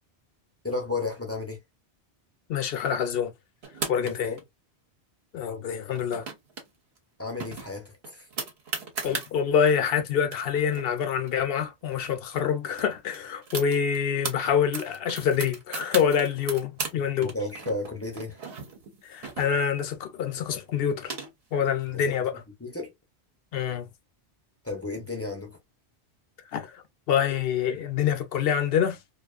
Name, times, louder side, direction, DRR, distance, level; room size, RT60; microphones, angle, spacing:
voice 1, 0.6-1.6 3.9-4.4 7.2-8.3 17.2-18.4 21.9-22.9 24.6-25.6, left 2 dB, 15° left, 0.5 m, -33 dB
voice 2, 2.5-3.3 3.9-4.3 5.3-6.2 9.0-17.3 19.1-21.1 21.5-22.3 23.5-23.9 26.5-29.0, left 7 dB, 65° left, 0.7 m, -26 dB
sound 1, 3.6-4.4 5.9-6.7 7.0-7.1 7.4-9.3 9.9-10.0 10.2-12.1 12.4-12.5 12.7-14.4 14.7-17.0 17.2-19.8 20.7-21.6, right 4 dB, 60° right, 1.0 m, -36 dB
2.6 x 2.3 x 2.3 m
omnidirectional pair, 1.1 m